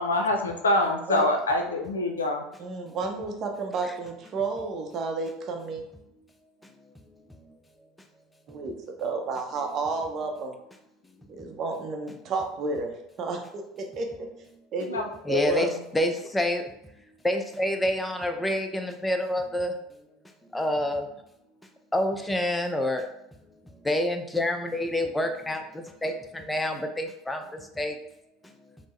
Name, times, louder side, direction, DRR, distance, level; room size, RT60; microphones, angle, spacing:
voice 1, 0.0-2.4 14.9-15.0, left 1 dB, 90° left, 3 dB, 0.4 m, -25 dB
voice 2, 2.6-5.8 8.5-8.7 9.0-10.6 11.3-14.3 14.7-15.7, right 3 dB, 45° right, 3 dB, 0.6 m, -31 dB
voice 3, 15.3-16.6 17.2-19.8 20.5-21.1 21.9-23.1 23.8-28.0 28.4-28.5, left 1 dB, 10° left, 5 dB, 0.4 m, -28 dB
3.4 x 2.0 x 3.1 m, 0.81 s
hypercardioid pair, 75°, 0 cm